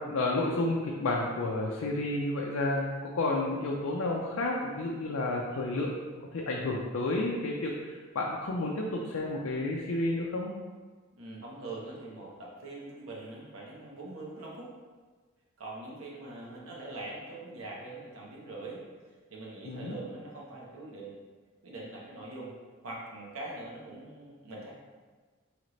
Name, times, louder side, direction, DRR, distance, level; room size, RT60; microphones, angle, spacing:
voice 1, 0.0-5.9 6.3-10.5 19.7-19.9, left 2 dB, 85° left, -1 dB, 0.4 m, -31 dB
voice 2, 11.2-14.7 15.6-18.8 19.3-21.1 21.6-22.6 22.8-24.7, right 2 dB, 90° right, -4 dB, 1.0 m, -43 dB
3.2 x 3.1 x 3.9 m, 1.4 s
head